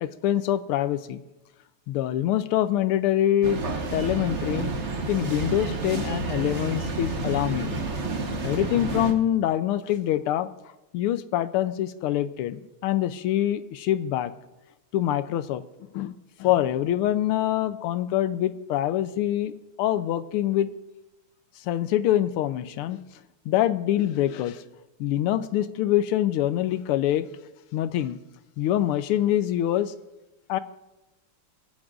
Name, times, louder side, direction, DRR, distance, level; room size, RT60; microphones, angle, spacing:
voice 1, 0.0-1.2 1.9-3.6 3.9-4.7 5.1-7.8 8.4-10.5 10.9-14.3 14.9-15.6 15.9-19.5 19.8-20.7 21.7-23.0 23.5-24.6 25.0-27.3 27.7-28.2 28.6-29.9 30.5-30.6, left 12 dB, 90° left, 13 dB, 1.5 m, -25 dB
sound 1, 3.4-9.1, right 3 dB, 40° right, 1.2 m, -30 dB
28.0 x 11.5 x 2.5 m, 1.0 s
omnidirectional pair, 2.4 m